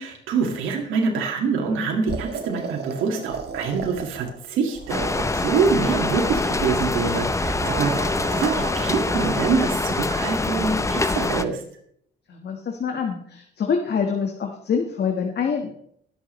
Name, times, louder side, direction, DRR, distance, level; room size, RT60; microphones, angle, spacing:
voice 1, 0.0-11.6, right 5 dB, 90° right, 1 dB, 2.1 m, -25 dB
sound 1, 2.1-4.4 4.7-6.8 7.4-9.7, right 6 dB, 55° right, 1.4 m, -34 dB
sound 2, 4.9-11.4, left 3 dB, 15° left, 0.7 m, -25 dB
voice 2, 12.3-15.7, left 6 dB, 55° left, 3 dB, 1.5 m, -25 dB
22.0 x 7.3 x 3.2 m, 0.66 s
cardioid pair, 90°, 20 cm